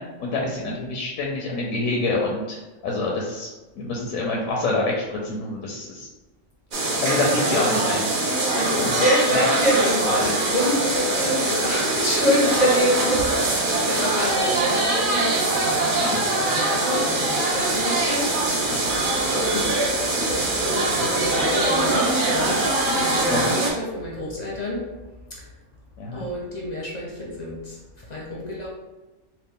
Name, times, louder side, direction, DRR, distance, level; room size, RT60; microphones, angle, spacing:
voice 1, 0.0-3.5 3.8-6.1 7.0-8.1 8.7-9.0 16.0-16.2 18.7-18.8 23.3-23.5 26.0-26.2, left 2 dB, 85° left, -2 dB, 1.0 m, -27 dB
voice 2, 0.5-0.9 8.5-19.1 19.3-19.9 20.6-22.6 22.9-24.9 26.1-27.8 28.1-28.7, equal, 40° left, -4 dB, 0.6 m, -27 dB
sound 1, 6.7-23.7, right 2 dB, 50° right, 0.7 m, -23 dB
3.1 x 2.3 x 3.6 m, 1.1 s
omnidirectional pair, 1.4 m